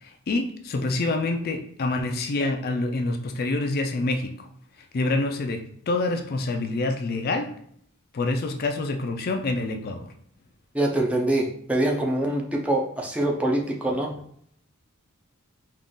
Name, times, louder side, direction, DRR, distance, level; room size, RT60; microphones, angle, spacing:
voice 1, 0.0-4.5 4.9-7.6 8.1-10.1, left 2 dB, 45° left, 4 dB, 0.4 m, -27 dB
voice 2, 10.7-14.1, right 1 dB, 5° right, 0 dB, 0.5 m, -24 dB
3.7 x 2.4 x 3.7 m, 0.64 s
head